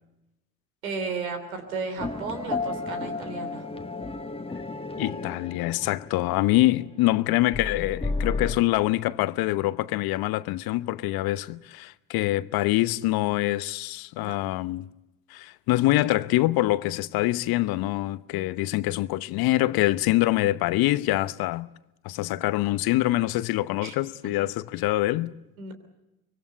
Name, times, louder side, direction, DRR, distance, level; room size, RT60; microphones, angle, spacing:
voice 1, 0.8-3.6 14.2-14.4 23.8-23.9 25.6-25.7, right 4 dB, 80° right, 3.3 m, -34 dB
sound 1, 2.0-7.1 7.5-8.5, left 3 dB, 15° left, 1.5 m, -33 dB
voice 2, 5.0-14.9 15.3-21.7 22.0-25.3, left 17 dB, 60° left, 0.9 m, -25 dB
24.5 x 21.5 x 8.2 m
figure-of-eight pair, 50°, 41 cm